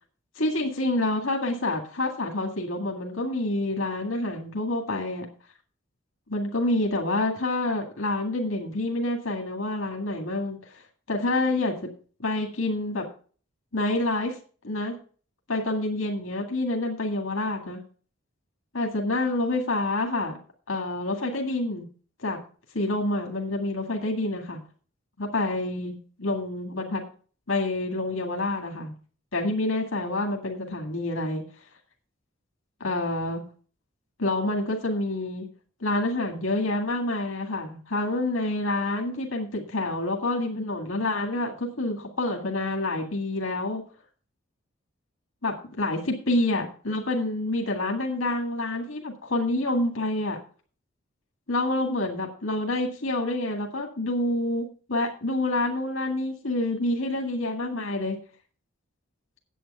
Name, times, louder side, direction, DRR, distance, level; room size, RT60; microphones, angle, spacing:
voice 1, 0.4-5.3 6.3-10.8 11.1-11.9 12.2-13.1 13.7-14.4 14.6-15.0 15.5-17.8 18.7-20.3 20.7-21.9 22.2-22.4 22.7-24.6 25.2-27.0 27.5-28.9 29.3-31.4 32.8-33.4 34.2-35.5 35.8-43.8 45.4-50.4 51.5-58.2, left 2 dB, 80° left, 1 dB, 2.0 m, -27 dB
9.3 x 8.3 x 5.5 m, 0.41 s
head